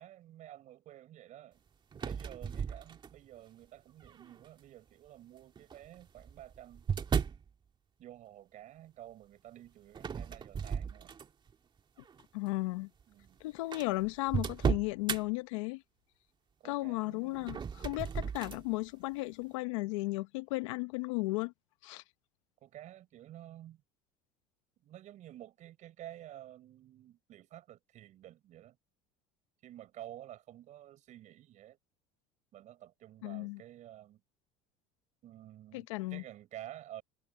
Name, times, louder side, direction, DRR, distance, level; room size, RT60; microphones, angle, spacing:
voice 1, 0.0-1.6 2.0-6.9 8.0-11.1 13.1-13.4 16.6-17.5 22.6-23.8 24.8-28.8 29.6-31.8 32.5-34.2 35.2-37.0, right 13 dB, 50° right, 6.3 m, -51 dB
sound 1, 1.9-3.4 4.0-4.5 5.6-7.5 9.9-11.5 12.0-12.2 13.0-13.1 13.3-13.4 13.7-15.2 17.3-18.6, right 6 dB, 30° right, 1.9 m, -35 dB
voice 2, 12.3-12.9 13.4-15.8 16.6-21.5 21.8-22.0 33.2-33.6 35.7-36.2, left 22 dB, 85° left, 1.1 m, -35 dB
supercardioid pair, 105°, 16 cm